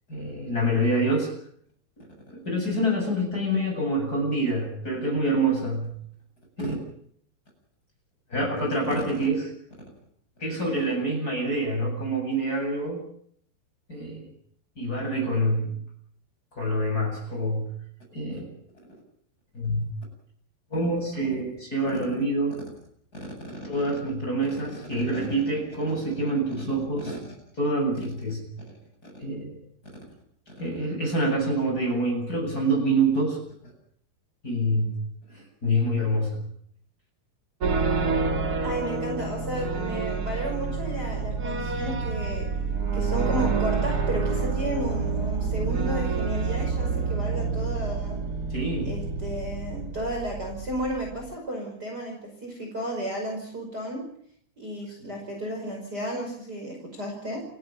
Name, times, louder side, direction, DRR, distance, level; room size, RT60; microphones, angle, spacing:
voice 1, 0.1-1.3 2.0-2.1 2.4-5.9 6.6-6.8 8.3-9.5 10.4-13.0 13.9-14.3 14.8-15.8 16.5-17.7 18.1-18.5 19.5-19.8 20.7-22.6 23.6-27.2 27.6-28.5 29.0-29.6 30.6-33.4 33.6-33.7 34.4-35.0 35.3-36.4 48.5-49.0, right 1 dB, 20° left, 1 dB, 8.0 m, -26 dB
sound 1, 37.6-51.3, right 4 dB, 65° right, 0.9 m, -28 dB
voice 2, 38.6-42.5 42.9-48.2 48.8-54.0 54.6-57.4, right 1 dB, 20° right, 1 dB, 5.7 m, -33 dB
29.5 x 13.0 x 9.0 m, 0.64 s
omnidirectional pair, 5.0 m